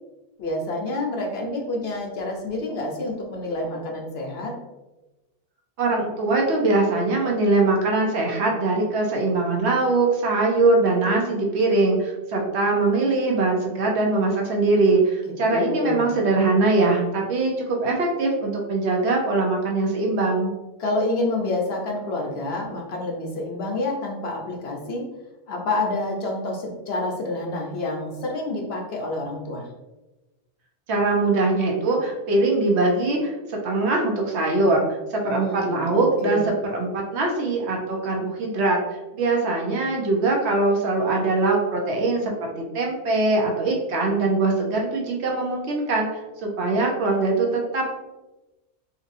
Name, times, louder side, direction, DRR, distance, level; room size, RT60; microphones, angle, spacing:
voice 1, 0.4-4.5 15.2-16.1 20.8-25.0 25.5-29.7 35.2-35.8 36.2-36.4, left 2 dB, 65° left, 0 dB, 0.9 m, -28 dB
voice 2, 5.8-20.5 30.9-38.8 39.1-42.3 42.6-47.9, right 2 dB, 70° right, 0 dB, 1.0 m, -22 dB
4.1 x 2.6 x 2.5 m, 1.1 s
omnidirectional pair, 1.2 m